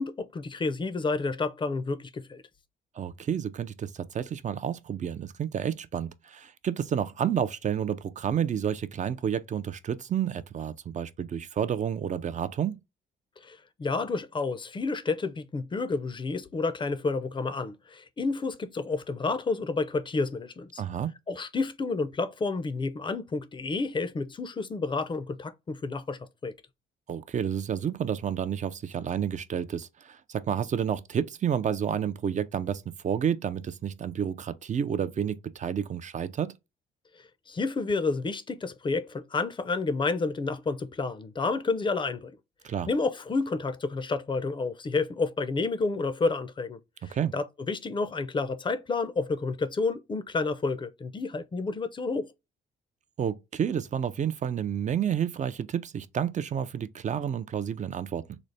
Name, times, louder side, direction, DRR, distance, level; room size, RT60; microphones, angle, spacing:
voice 1, 0.0-2.4 13.4-20.8 21.3-26.5 37.5-42.3 42.9-46.8 47.0-52.3, left 3 dB, 25° left, 0.5 m, -30 dB
voice 2, 3.0-12.8 20.8-21.1 27.1-36.6 42.6-42.9 47.1-47.3 53.2-58.4, right 8 dB, 40° right, 0.4 m, -30 dB
3.9 x 2.0 x 3.2 m
cardioid pair, 90°, 20 cm